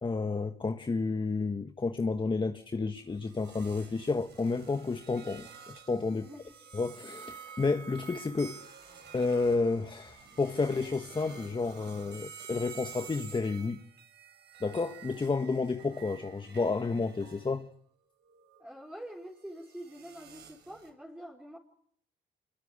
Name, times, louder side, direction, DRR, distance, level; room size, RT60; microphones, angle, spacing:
voice 1, 0.0-6.3 6.7-8.7 9.1-13.8 14.6-17.7, left 4 dB, 25° left, 1.4 m, -31 dB
sound 1, 3.1-17.6 18.2-20.9, right 6 dB, 55° right, 7.4 m, -50 dB
voice 2, 6.1-6.5 18.6-21.6, right 1 dB, 5° right, 4.5 m, -46 dB
26.0 x 22.5 x 9.9 m
cardioid pair, 90°, 20 cm